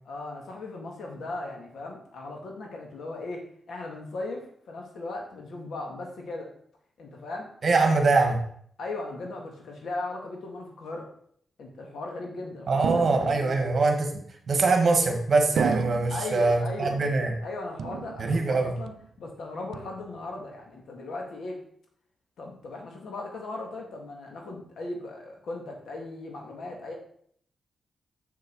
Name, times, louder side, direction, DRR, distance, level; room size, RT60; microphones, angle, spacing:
voice 1, 0.1-6.5 7.0-7.5 7.8-8.1 8.8-11.1 11.6-13.7 16.1-17.0 17.4-21.6 22.4-26.9, left 2 dB, 80° left, 1 dB, 2.0 m, -37 dB
voice 2, 7.6-8.4 12.7-17.3 18.2-18.7, right 3 dB, 45° right, 4 dB, 1.6 m, -23 dB
sound 1, 12.8-13.7 14.5-15.0 15.6-16.4 16.9-17.5 17.8-18.6 18.9-19.3 19.7-20.3, right 7 dB, 75° right, 0.4 m, -33 dB
6.7 x 6.5 x 4.7 m, 0.63 s
wide cardioid pair, 115°, 0 cm